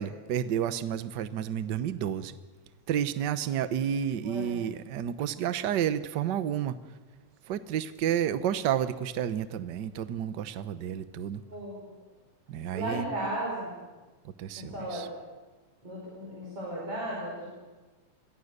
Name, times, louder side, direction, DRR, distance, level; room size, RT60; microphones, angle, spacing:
voice 1, 0.0-2.3 2.9-6.8 7.5-11.4 12.5-13.1 14.2-15.1, right 9 dB, 75° right, 13 dB, 1.0 m, -31 dB
voice 2, 4.2-4.7 11.5-11.9 12.7-13.7 14.7-15.0 15.8-17.5, right 1 dB, 50° right, -4 dB, 6.2 m, -35 dB
28.5 x 22.0 x 6.7 m, 1.3 s
omnidirectional pair, 3.4 m